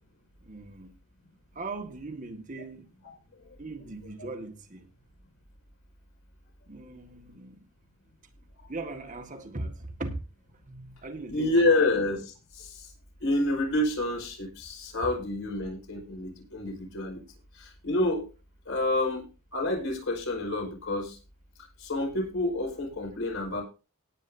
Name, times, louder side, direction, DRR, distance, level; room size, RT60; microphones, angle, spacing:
voice 1, 0.4-0.9 1.5-2.9 3.6-4.9 6.7-7.7 8.7-10.2 10.6-11.9, right 2 dB, 35° right, 1.8 m, -39 dB
voice 2, 11.3-12.9 13.2-17.2 17.6-18.3 18.7-21.2 21.8-23.6, left 2 dB, 60° left, 5.2 m, -28 dB
18.5 x 9.4 x 2.7 m
head